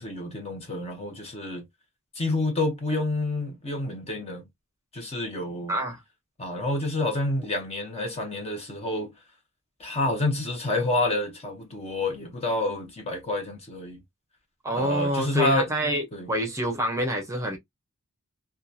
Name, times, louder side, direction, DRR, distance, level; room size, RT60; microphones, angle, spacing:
voice 1, 0.0-1.6 2.1-4.4 4.9-5.8 6.4-9.1 9.8-14.0 14.7-15.7 16.1-16.3, left 2 dB, 30° left, 0.8 m, -28 dB
voice 2, 5.7-6.0 14.6-17.6, equal, 15° right, 0.7 m, -27 dB
2.8 x 2.3 x 2.4 m
head